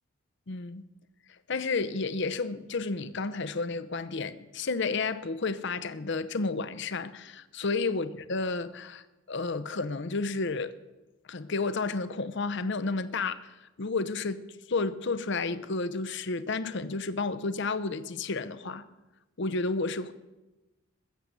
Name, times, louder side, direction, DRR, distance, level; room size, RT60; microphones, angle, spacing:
voice 1, 0.5-0.8 1.5-10.7 11.3-14.4 14.7-18.8 19.4-20.1, left 3 dB, 60° left, 0.8 m, -31 dB
20.5 x 7.6 x 8.2 m
head